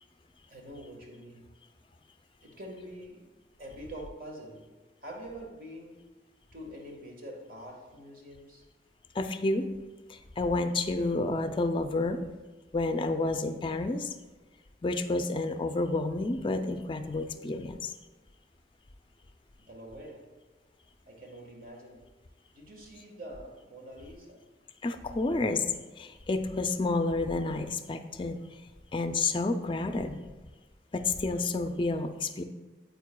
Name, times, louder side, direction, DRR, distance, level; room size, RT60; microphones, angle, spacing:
voice 1, 0.5-1.5 2.4-3.3 3.6-4.7 5.0-6.0 6.5-8.6 19.6-20.4 21.1-22.1 22.5-24.4, right 1 dB, 55° right, 1 dB, 1.4 m, -45 dB
voice 2, 9.1-9.7 10.1-12.2 12.7-14.1 14.8-17.9 24.8-25.6 26.0-28.4 28.9-30.2 30.9-32.4, left 2 dB, 30° left, 8 dB, 0.4 m, -30 dB
9.3 x 7.9 x 2.3 m, 1.3 s
head